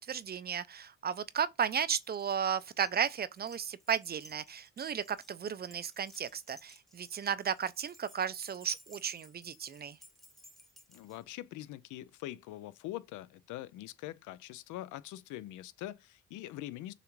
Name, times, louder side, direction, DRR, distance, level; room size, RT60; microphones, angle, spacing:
voice 1, 0.1-10.0, right 8 dB, 35° right, 0.4 m, -34 dB
Keys jangling, 2.0-11.2, left 1 dB, ahead, 0.7 m, -57 dB
voice 2, 10.9-16.9, left 14 dB, 90° left, 0.5 m, -43 dB
6.5 x 2.4 x 3.1 m
cardioid pair, 90°, 30 cm